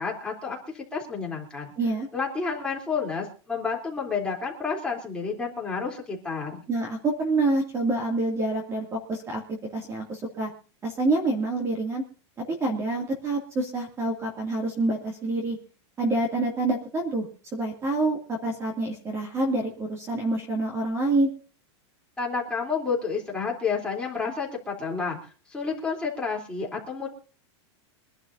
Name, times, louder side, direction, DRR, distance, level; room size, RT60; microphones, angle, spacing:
voice 1, 0.0-1.7 2.1-6.6 22.2-25.2 25.5-27.1, left 5 dB, 5° left, -3 dB, 3.6 m, -30 dB
voice 2, 1.8-2.1 6.7-9.4 9.7-10.5 10.8-12.0 12.6-15.6 16.0-17.3 17.5-21.3, right 2 dB, 20° right, 1 dB, 2.6 m, -27 dB
25.0 x 11.5 x 2.7 m, 0.39 s
supercardioid pair, 160°, 15 cm